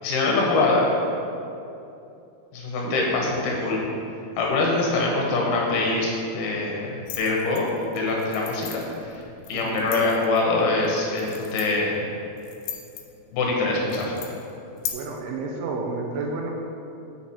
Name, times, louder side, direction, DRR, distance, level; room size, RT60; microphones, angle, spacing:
voice 1, 0.0-0.9 2.5-3.8 4.4-7.7 7.9-8.8 9.5-12.1 13.3-14.1, left 3 dB, 75° left, -2 dB, 2.9 m, -24 dB
voice 2, 2.8-3.5 4.5-4.8 9.5-9.9 14.9-16.5, right 3 dB, 80° right, 1 dB, 2.6 m, -31 dB
sound 1, 7.1-14.9, left 10 dB, 90° left, 2.7 m, -39 dB
7.8 x 6.0 x 4.2 m, 2.7 s
omnidirectional pair, 4.8 m